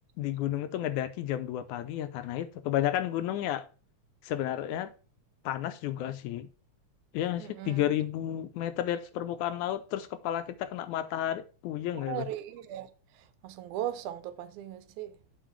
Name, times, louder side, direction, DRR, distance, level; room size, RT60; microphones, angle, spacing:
voice 1, 0.2-3.7 4.2-4.9 5.5-6.5 7.1-12.3, left 12 dB, 80° left, 2.1 m, -32 dB
voice 2, 7.4-7.8 12.1-12.9 13.2-15.1, right 12 dB, 85° right, 2.2 m, -38 dB
7.7 x 4.5 x 4.7 m
omnidirectional pair, 3.4 m